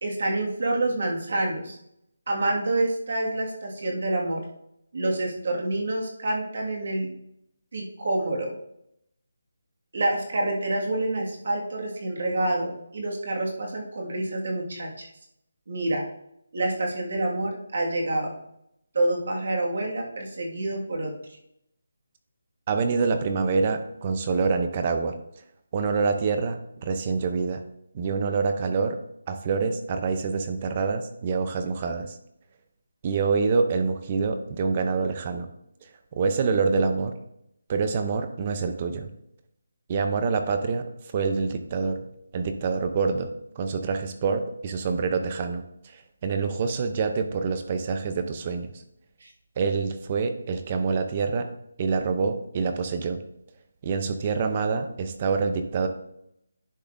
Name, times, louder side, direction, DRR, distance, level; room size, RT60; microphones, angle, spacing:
voice 1, 0.0-1.8 2.3-4.4 4.9-7.1 7.7-8.5 9.9-15.1 15.7-16.0 16.5-18.3 18.9-21.1 49.2-49.3, right 2 dB, 50° right, 0 dB, 1.8 m, -27 dB
voice 2, 22.7-25.2 25.7-27.6 27.9-29.0 29.3-32.2 33.0-35.5 36.1-37.1 37.7-39.1 39.9-40.8 41.1-42.1 42.3-43.3 43.6-48.7 49.6-51.5 51.8-53.2 53.8-55.9, right 4 dB, 20° right, 8 dB, 0.5 m, -26 dB
10.0 x 6.0 x 2.6 m, 0.76 s
hypercardioid pair, 175°, 0 cm